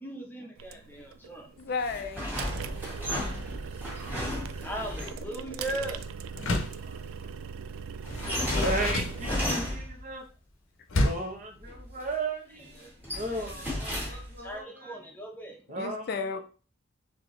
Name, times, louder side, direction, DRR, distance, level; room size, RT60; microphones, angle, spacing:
voice 1, 0.0-1.5 3.0-3.1 4.6-6.0 12.5-12.9 13.3-13.7 14.0-15.6, right 1 dB, 10° left, 1 dB, 0.7 m, -39 dB
sound 1, 0.6-9.4, right 6 dB, 90° right, 0.3 m, -40 dB
voice 2, 1.6-2.4 15.8-16.4, left 4 dB, 50° left, 7 dB, 0.4 m, -33 dB
sound 2, 1.8-5.3 8.0-10.1 11.6-12.1 12.6-14.5, left 1 dB, 10° right, 1.6 m, -34 dB
Door, 6.3-6.9 8.0-9.7 10.9-11.4, left 1 dB, 85° left, 0.7 m, -30 dB
voice 3, 8.6-10.2 10.9-12.9 13.2-14.7 15.7-16.1, right 2 dB, 40° right, 2 dB, 0.8 m, -35 dB
4.1 x 2.8 x 3.2 m, 0.38 s
head